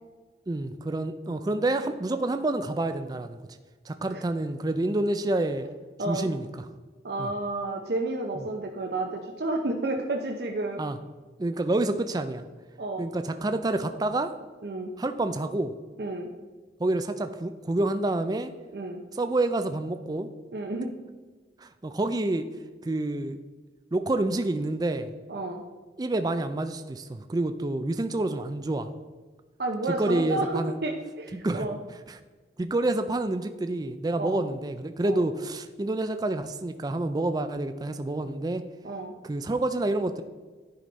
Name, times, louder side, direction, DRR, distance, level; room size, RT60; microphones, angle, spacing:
voice 1, 0.5-3.4 3.9-5.7 6.1-6.7 7.2-7.3 10.8-11.0 11.4-12.4 13.0-14.3 15.0-15.7 16.8-18.5 19.2-20.3 21.6-22.5 22.8-23.4 23.9-25.1 26.0-28.9 29.9-30.8 31.3-31.7 32.1-32.2 32.6-38.6 39.2-40.2, right 2 dB, 20° right, 9 dB, 0.4 m, -28 dB
voice 2, 7.0-10.8 12.8-13.0 14.6-14.9 16.0-16.3 18.7-19.0 20.5-20.9 25.3-25.6 29.6-31.8 34.2-34.4 35.0-35.2 38.8-39.1, right 2 dB, 60° right, 2 dB, 0.7 m, -31 dB
10.5 x 5.1 x 4.0 m, 1.4 s
head